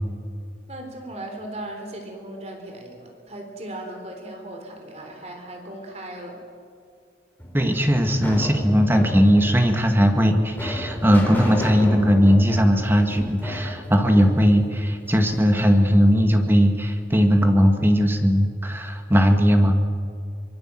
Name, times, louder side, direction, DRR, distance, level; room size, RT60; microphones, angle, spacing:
voice 1, 0.7-6.4, right 1 dB, 40° right, 3 dB, 3.7 m, -37 dB
sound 1, 7.4-15.5, left 1 dB, 10° left, 3.9 m, -35 dB
voice 2, 7.5-19.8, equal, 10° right, 5 dB, 1.9 m, -18 dB
24.5 x 23.0 x 7.7 m, 2.3 s
head